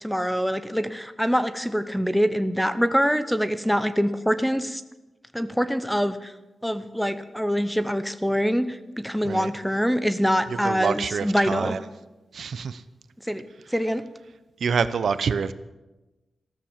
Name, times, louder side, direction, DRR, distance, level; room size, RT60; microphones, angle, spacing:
voice 1, 0.0-4.8 5.3-6.3 6.6-11.8 13.3-13.4 13.7-14.0, equal, ahead, 12 dB, 0.8 m, -24 dB
voice 2, 10.5-11.8 12.3-12.8 14.6-15.5, right 6 dB, 65° right, 13 dB, 0.7 m, -26 dB
15.0 x 13.0 x 7.3 m, 1.1 s
wide cardioid pair, 165°, 0 cm